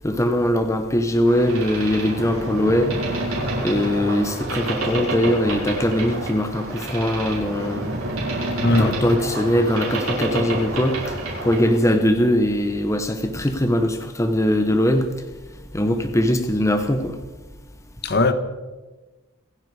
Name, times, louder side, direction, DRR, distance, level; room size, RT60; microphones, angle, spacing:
voice 1, 0.0-3.0 3.6-7.9 8.7-11.2 11.4-15.1 15.7-17.2, left 1 dB, 15° left, 0.9 m, -21 dB
Boat Water vehicle, 1.3-11.8, right 1 dB, 80° right, 6.0 m, -28 dB
voice 2, 8.6-9.0 18.0-18.3, left 2 dB, 50° left, 1.2 m, -18 dB
27.0 x 10.0 x 4.8 m
head